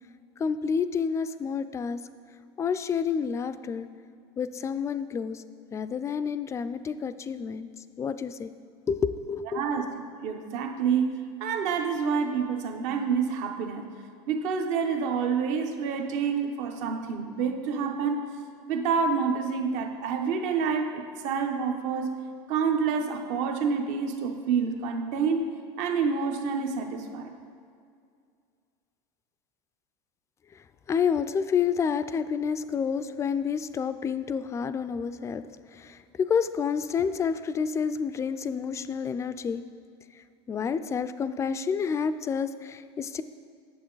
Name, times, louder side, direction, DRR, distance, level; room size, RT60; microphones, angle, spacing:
voice 1, 0.4-2.0 2.6-3.9 4.4-5.4 5.7-7.7 8.0-8.5 8.9-9.6 30.9-35.4 35.7-39.6 40.5-43.2, left 6 dB, 20° left, 12 dB, 0.3 m, -29 dB
voice 2, 9.5-9.8 10.2-13.8 14.3-18.2 18.7-22.1 22.5-25.5 25.8-27.3, right 6 dB, 60° right, 5 dB, 0.8 m, -28 dB
8.7 x 6.8 x 3.9 m, 2.3 s
supercardioid pair, 110°, 14 cm